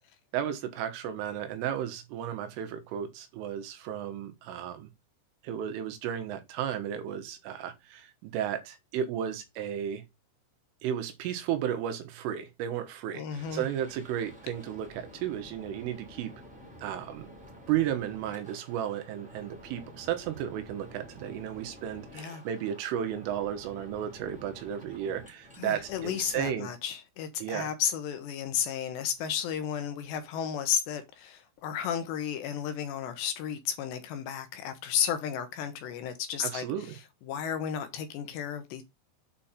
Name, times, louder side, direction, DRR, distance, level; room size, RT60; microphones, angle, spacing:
voice 1, 0.3-4.9 5.4-10.0 10.8-16.3 16.8-17.3 17.7-26.7 27.4-27.7 36.4-37.0, right 10 dB, 90° right, 4.0 m, -34 dB
voice 2, 13.1-13.6 22.1-22.4 25.6-38.8, left 8 dB, 75° left, 2.9 m, -33 dB
sound 1, 13.3-26.5, equal, 5° right, 1.6 m, -50 dB
8.5 x 4.4 x 5.2 m
omnidirectional pair, 5.7 m